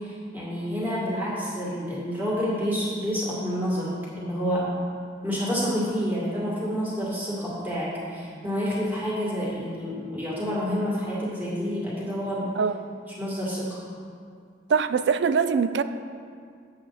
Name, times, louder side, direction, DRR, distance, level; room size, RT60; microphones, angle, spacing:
voice 1, 0.0-4.8 5.2-12.5 13.2-13.8, equal, 10° right, -8 dB, 2.1 m, -28 dB
voice 2, 14.7-15.8, right 6 dB, 70° right, 12 dB, 0.3 m, -22 dB
8.0 x 7.6 x 4.1 m, 2.2 s
head